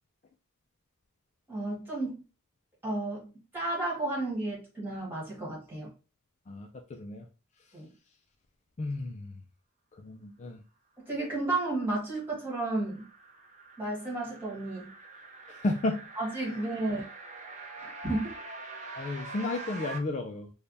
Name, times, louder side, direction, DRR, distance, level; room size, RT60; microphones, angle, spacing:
voice 1, 1.5-2.1 2.8-5.9 7.7-7.9 11.1-13.1 13.8-14.9 16.2-17.1 17.8-18.4, right 2 dB, 10° right, -4 dB, 1.6 m, -32 dB
voice 2, 6.5-7.3 7.6-7.8 8.8-9.4 9.9-10.6 15.5-16.1 16.4-16.6 18.9-20.5, left 2 dB, 30° left, 4 dB, 0.3 m, -33 dB
sound 1, 11.6-20.0, right 2 dB, 35° right, 0.6 m, -45 dB
3.3 x 2.2 x 3.8 m, 0.32 s
head